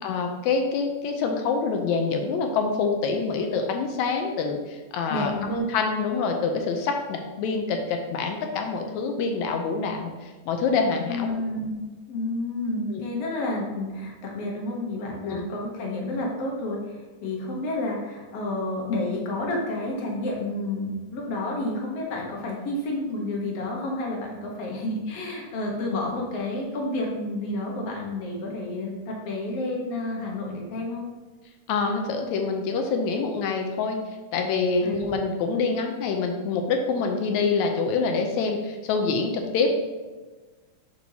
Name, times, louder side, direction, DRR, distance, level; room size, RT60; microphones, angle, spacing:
voice 1, 0.0-11.3 12.9-13.0 15.2-15.5 31.7-34.0 34.3-39.8, left 4 dB, 75° left, 4 dB, 1.8 m, -26 dB
voice 2, 5.1-5.6 11.1-31.0 34.8-34.9, left 2 dB, 60° left, -1 dB, 1.9 m, -30 dB
6.9 x 6.2 x 2.8 m, 1.3 s
omnidirectional pair, 3.6 m